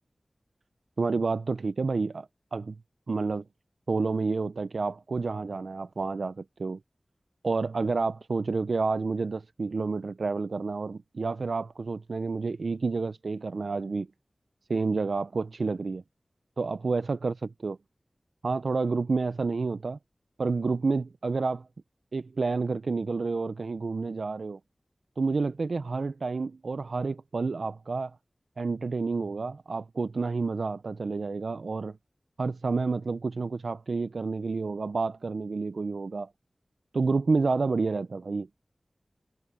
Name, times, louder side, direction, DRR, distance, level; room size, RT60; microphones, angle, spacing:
voice 1, 1.0-2.8 3.1-3.4 3.9-6.8 7.4-14.1 14.7-16.0 16.6-17.8 18.4-20.0 20.4-21.7 22.1-24.6 25.2-28.2 28.6-32.0 32.4-36.3 36.9-38.5, right 4 dB, 85° right, 0.4 m, -29 dB
wide cardioid pair, 50°, 0 cm